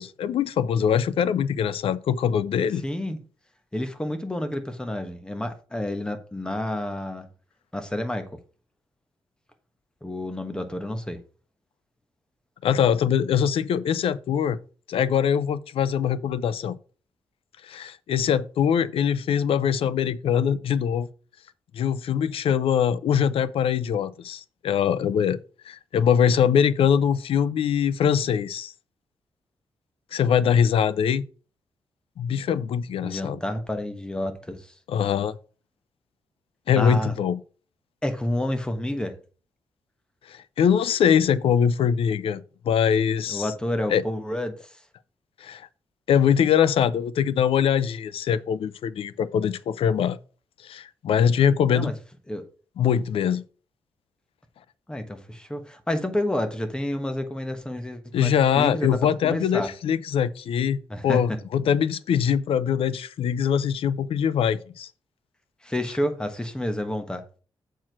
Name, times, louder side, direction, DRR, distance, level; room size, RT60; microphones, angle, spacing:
voice 1, 0.0-2.8 12.6-14.6 14.9-16.8 17.6-21.1 21.7-25.4 25.7-28.7 30.1-31.2 32.2-33.4 34.9-35.3 36.7-37.4 40.3-43.5 43.9-44.0 45.4-45.7 46.1-50.2 50.6-51.9 52.8-53.4 58.1-60.8 61.0-64.9, left 8 dB, 90° left, 0.5 m, -23 dB
voice 2, 2.8-3.2 3.7-7.3 7.7-8.3 10.0-11.2 33.0-34.7 36.8-37.1 38.0-39.2 43.3-44.5 51.7-51.9 52.3-52.4 54.9-59.7 60.9-61.4 65.6-67.2, left 1 dB, 10° left, 1.2 m, -29 dB
7.4 x 4.6 x 6.0 m
wide cardioid pair, 135°, 9 cm